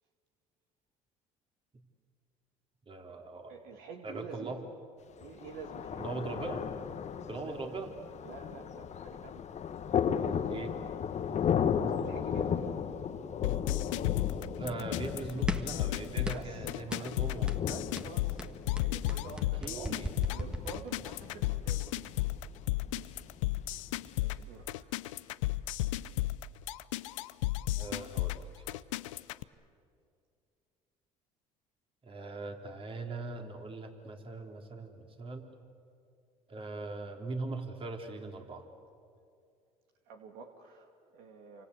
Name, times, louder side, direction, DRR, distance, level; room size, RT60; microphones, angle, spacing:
voice 1, 2.9-3.5 4.0-4.6 6.0-6.7 7.3-7.9 10.5-10.7 14.6-17.5 19.6-20.1 27.7-28.7 32.0-35.5 36.5-38.7, right 3 dB, 35° right, 3 dB, 3.7 m, -40 dB
voice 2, 3.5-4.7 5.2-6.1 7.3-7.6 8.2-9.5 12.0-12.9 16.3-18.5 18.8-22.0 24.2-25.0 40.0-41.6, right 5 dB, 75° right, 3 dB, 2.5 m, -48 dB
Thunder, 5.2-24.1, left 7 dB, 45° left, 1.3 m, -36 dB
sound 1, 13.4-29.4, left 16 dB, 90° left, 0.6 m, -33 dB
sound 2, 15.5-15.8 16.3-16.6 16.9-17.1 17.5-17.7 18.0-21.3, right 1 dB, 5° right, 1.5 m, -38 dB
28.5 x 25.0 x 8.3 m, 2.4 s
supercardioid pair, 75°, 16 cm